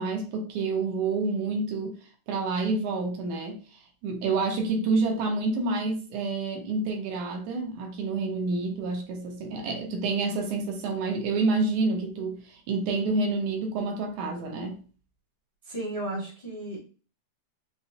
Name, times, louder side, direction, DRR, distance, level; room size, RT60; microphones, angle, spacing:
voice 1, 0.0-2.0 2.3-3.6 4.0-14.8, right 3 dB, 75° right, 2.3 m, -28 dB
voice 2, 15.6-16.8, right 1 dB, 35° left, 0.6 m, -34 dB
5.9 x 2.1 x 2.7 m
omnidirectional pair, 3.5 m